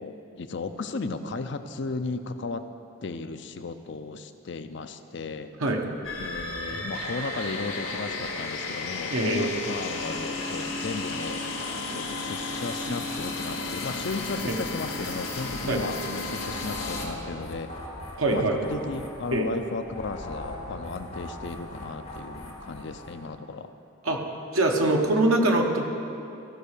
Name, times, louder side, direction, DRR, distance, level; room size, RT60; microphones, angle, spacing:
voice 1, 0.0-2.7 3.0-5.5 6.2-11.4 11.9-17.7 18.3-23.7, left 3 dB, 55° left, 9 dB, 0.5 m, -35 dB
sound 1, 6.0-17.1, left 3 dB, 75° left, 1.8 m, -33 dB
voice 2, 9.1-9.5 14.4-14.6 15.7-15.8 18.2-18.6 19.3-19.5 24.0-24.2 24.5-25.9, right 2 dB, 80° right, 2 dB, 1.2 m, -23 dB
sound 2, 16.4-23.3, left 1 dB, 30° left, 1.6 m, -40 dB
15.0 x 5.4 x 6.6 m, 2.7 s
head